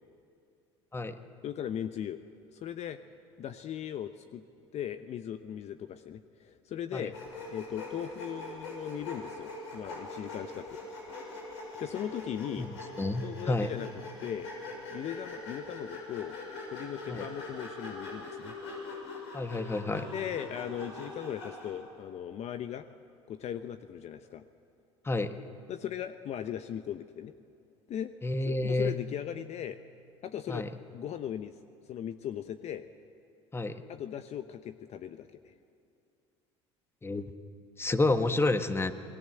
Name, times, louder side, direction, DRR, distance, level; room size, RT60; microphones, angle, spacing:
voice 1, 1.4-2.2 2.5-3.0 3.4-4.4 4.7-7.2 7.5-10.8 11.8-12.7 13.2-13.9 14.2-14.5 14.9-16.4 16.7-18.5 20.1-22.9 23.3-24.4 25.7-27.3 27.9-28.1 28.5-29.8 30.2-30.7 30.9-31.5 31.9-32.8 33.9-35.5, left 10 dB, 50° left, 10 dB, 0.9 m, -38 dB
Sawing, 7.1-21.8, left 2 dB, 85° left, 6.8 m, -42 dB
voice 2, 13.0-13.7 17.1-17.3 19.3-20.1 25.0-25.3 28.2-28.9 30.5-30.7 33.5-33.8 37.0-37.3 37.8-38.9, left 2 dB, 15° left, 9 dB, 1.6 m, -29 dB
28.0 x 20.0 x 7.8 m, 2.6 s
hypercardioid pair, 75°, 14 cm